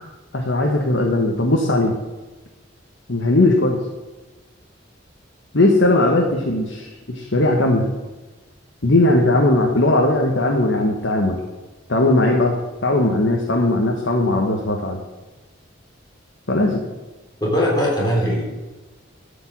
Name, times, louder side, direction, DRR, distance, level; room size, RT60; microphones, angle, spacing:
voice 1, 0.3-1.9 3.1-3.8 5.5-7.9 8.8-11.4 11.9-12.6 12.8-15.0 16.5-16.8, left 2 dB, 70° left, 1 dB, 1.4 m, -18 dB
voice 2, 17.4-18.4, equal, 20° left, -4 dB, 3.7 m, -20 dB
12.0 x 5.4 x 7.5 m, 1.2 s
head